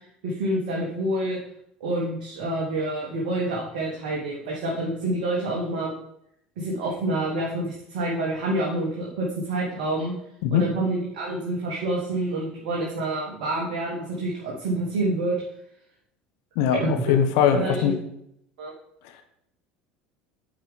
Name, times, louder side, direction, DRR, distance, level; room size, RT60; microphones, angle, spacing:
voice 1, 0.0-1.4 1.8-6.0 6.6-10.1 10.5-15.3 16.7-17.0 17.5-17.9 18.6-18.7, right 1 dB, 65° right, -3 dB, 1.5 m, -27 dB
voice 2, 17.1-17.9, left 8 dB, 60° left, 6 dB, 1.0 m, -20 dB
9.2 x 5.1 x 3.7 m, 0.75 s
figure-of-eight pair, 70°, 4 cm